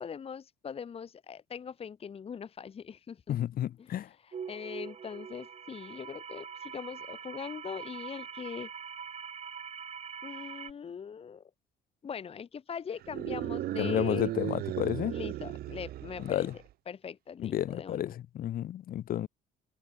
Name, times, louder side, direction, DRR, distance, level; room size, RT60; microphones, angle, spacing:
voice 1, 0.0-3.4 3.8-3.9 4.2-8.7 10.2-11.4 12.0-14.3 15.1-16.5 16.9-18.0, left 7 dB, 35° left, 1.4 m, -41 dB
voice 2, 3.3-4.1 13.8-15.2 16.2-16.5 17.4-19.3, left 11 dB, 60° left, 1.9 m, -31 dB
sound 1, 4.3-10.7, right 7 dB, 40° right, 7.3 m, -43 dB
sound 2, 13.0-16.6, right 14 dB, 65° right, 0.8 m, -36 dB
cardioid pair, 110°, 17 cm